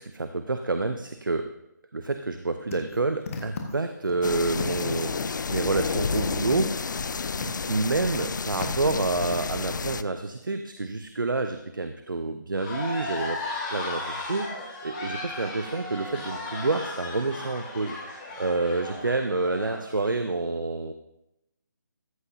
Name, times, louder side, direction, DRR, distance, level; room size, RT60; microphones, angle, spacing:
voice 1, 0.0-1.5 1.9-7.1 7.7-13.4 13.7-20.9, right 3 dB, 90° right, 8 dB, 0.7 m, -28 dB
sound 1, 2.7-4.1 4.6-5.2 5.6-7.7 7.9-8.2 8.6-9.4, left 5 dB, 45° left, 1.5 m, -37 dB
sound 2, 4.2-10.0, left 5 dB, 70° left, 0.4 m, -30 dB
sound 3, 12.5-20.1, left 2 dB, 25° left, 3.0 m, -36 dB
14.0 x 7.4 x 2.7 m, 0.86 s
figure-of-eight pair, 155°, 11 cm